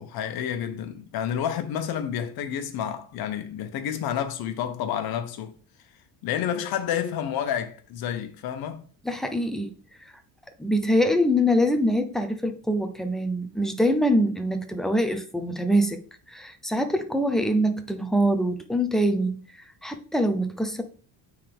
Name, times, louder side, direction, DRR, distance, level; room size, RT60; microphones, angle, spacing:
voice 1, 0.0-5.5 6.2-8.8, left 9 dB, 60° left, 1.1 m, -29 dB
voice 2, 9.1-9.7 10.0-10.1 10.6-16.0 16.3-19.4 19.8-20.8, equal, ahead, 0.5 m, -24 dB
9.0 x 3.8 x 3.5 m
cardioid pair, 145°, 41 cm